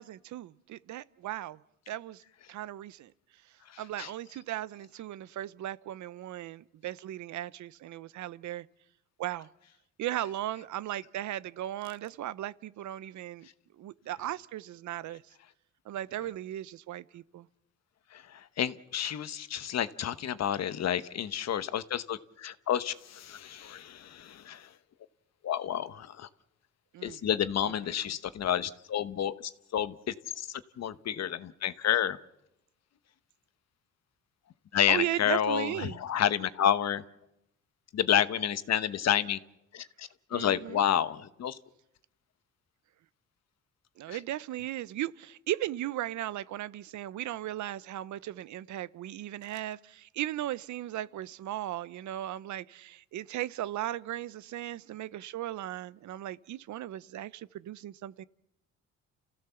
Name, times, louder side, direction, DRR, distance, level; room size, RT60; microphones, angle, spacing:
voice 1, 0.0-1.6 1.9-2.2 2.5-3.1 3.8-8.7 9.2-9.5 10.0-13.5 13.8-15.2 15.9-17.5 26.9-27.2 34.9-36.0 40.3-40.8 44.0-58.2, right 13 dB, 70° right, 0.7 m, -37 dB
voice 2, 3.7-4.1 18.1-24.7 25.4-26.3 27.0-32.2 34.7-37.0 37.9-39.4 39.7-41.6 44.1-44.2, left 10 dB, 60° left, 1.1 m, -30 dB
29.0 x 15.5 x 7.0 m
cardioid pair, 90°, 30 cm